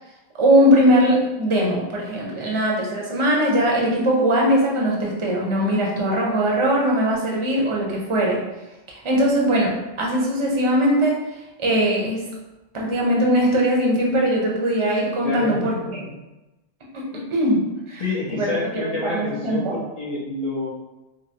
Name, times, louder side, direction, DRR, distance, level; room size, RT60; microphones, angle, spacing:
voice 1, 0.4-8.4 8.9-11.1 11.6-12.3 12.7-16.0 16.9-17.0 17.3-18.0 18.3-19.7, equal, 30° right, -2 dB, 0.7 m, -20 dB
voice 2, 15.2-16.1 17.1-17.3 18.0-20.7, left 3 dB, 40° left, -5 dB, 0.8 m, -28 dB
5.1 x 2.0 x 2.8 m, 1.0 s
omnidirectional pair, 1.1 m